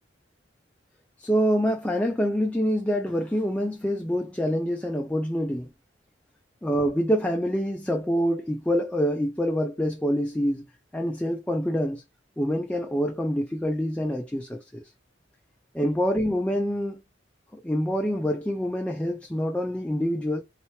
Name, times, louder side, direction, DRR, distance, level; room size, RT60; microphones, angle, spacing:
voice 1, 1.2-5.7 6.6-10.6 10.9-12.0 12.4-14.8 15.7-17.0 17.5-20.4, equal, 5° left, 0.4 m, -26 dB
3.3 x 2.8 x 3.0 m
head